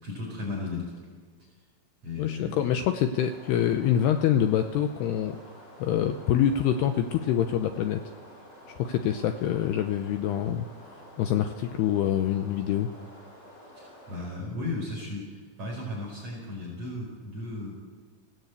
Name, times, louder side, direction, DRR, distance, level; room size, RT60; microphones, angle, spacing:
voice 1, 0.0-0.9 2.0-2.7 13.8-17.8, left 2 dB, 35° right, -4 dB, 5.8 m, -35 dB
voice 2, 2.2-5.4 5.8-8.0 8.7-10.7 11.2-12.9, left 10 dB, 80° left, 7 dB, 2.4 m, -25 dB
sound 1, 3.2-14.2, equal, 50° left, 7.1 m, -50 dB
26.0 x 17.5 x 8.3 m, 1.5 s
omnidirectional pair, 5.5 m